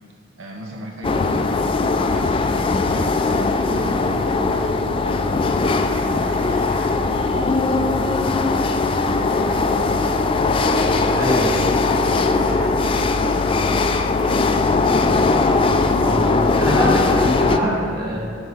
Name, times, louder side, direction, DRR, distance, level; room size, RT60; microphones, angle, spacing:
voice 1, 0.4-1.7 1.9-5.3 5.9-8.3 9.2-11.5 12.0-13.2, right 1 dB, 85° right, 1 dB, 0.9 m, -36 dB
sound 1, 1.0-17.6, left 3 dB, 25° left, 0.3 m, -19 dB
voice 2, 11.1-11.6 15.9-18.2, equal, 20° right, -5 dB, 1.7 m, -23 dB
7.9 x 4.7 x 5.7 m, 2.6 s
head